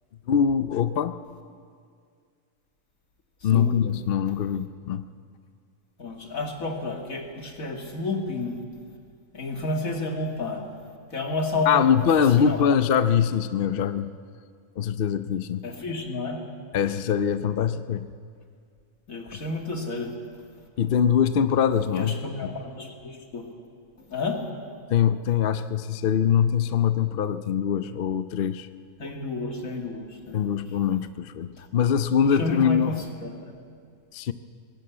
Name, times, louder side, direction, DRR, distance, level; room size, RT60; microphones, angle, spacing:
voice 1, 0.3-1.1 3.4-5.0 11.7-14.1 14.8-15.6 16.7-18.1 19.3-19.4 20.8-22.6 24.9-28.7 30.3-32.9 34.1-34.3, left 8 dB, 55° left, 11 dB, 0.7 m, -23 dB
voice 2, 6.0-8.6 9.3-10.6 11.1-11.9 12.4-12.6 15.6-16.4 19.1-20.1 21.9-23.5 24.1-24.4 29.0-30.6 32.2-33.5, left 3 dB, 75° left, 2 dB, 2.6 m, -31 dB
20.0 x 17.5 x 8.5 m, 2.2 s
omnidirectional pair, 1.5 m